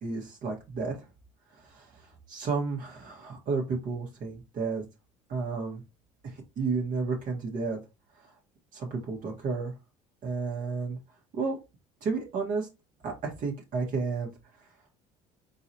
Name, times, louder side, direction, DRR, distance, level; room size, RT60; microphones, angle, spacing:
voice 1, 0.0-1.0 1.6-2.0 2.3-4.8 5.3-5.8 6.2-7.8 8.7-9.7 10.2-11.0 11.3-11.6 12.0-12.7 13.0-14.3, right 4 dB, 55° right, -1 dB, 1.4 m, -32 dB
4.0 x 3.9 x 2.9 m, 0.25 s
supercardioid pair, 75°, 17 cm